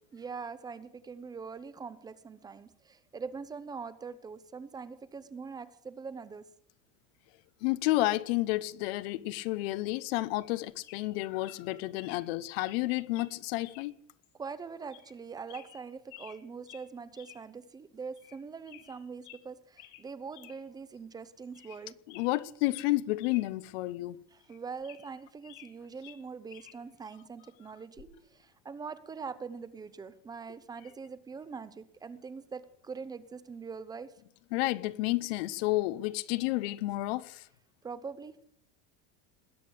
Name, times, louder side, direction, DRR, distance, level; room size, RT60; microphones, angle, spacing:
voice 1, 0.1-6.5 14.4-22.0 24.3-34.2 37.8-38.4, right 5 dB, 15° right, 0.7 m, -43 dB
voice 2, 7.6-13.9 22.1-24.2 34.5-37.4, left 18 dB, 85° left, 1.0 m, -31 dB
sound 1, 10.4-10.6 10.8-11.1 11.4-11.6 11.9-12.2 12.5-12.8 13.1-13.3 13.6-13.9 14.2-14.3 14.9-15.2 15.5-16.4 16.6-16.9 17.2-17.4 17.7-17.8 18.2-18.4 18.6-19.4 19.8-20.0 20.3-20.6 21.0-21.1 21.4-21.8 22.1-23.4 23.7-23.8 24.4-25.7 26.0-26.8 28.0-28.2, left 13 dB, 65° left, 3.5 m, -53 dB
20.5 x 8.7 x 7.9 m
cardioid pair, 175°, 29 cm